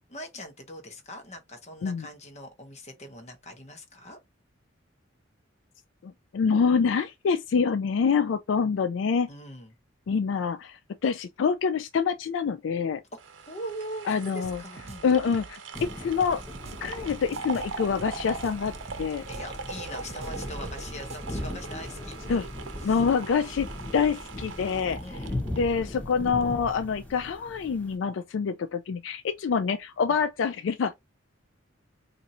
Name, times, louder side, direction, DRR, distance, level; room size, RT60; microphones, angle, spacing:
voice 1, 0.1-4.2 9.3-9.7 13.1-13.2 13.5-15.1 19.3-22.5 22.8-23.0 25.0-25.3 30.1-30.2, equal, 35° left, 1.0 m, -41 dB
voice 2, 6.0-9.3 10.1-13.0 14.1-14.6 15.0-16.4 16.8-18.7 19.0-19.2 22.3-22.4 22.8-25.0 25.6-30.9, left 6 dB, 70° left, 0.3 m, -26 dB
sound 1, 13.2-26.4 26.8-26.9, right 4 dB, 75° right, 0.7 m, -41 dB
sound 2, 14.4-21.5, right 3 dB, 35° right, 0.4 m, -46 dB
sound 3, 15.7-28.0, left 1 dB, 10° left, 0.9 m, -38 dB
2.6 x 2.5 x 4.1 m
head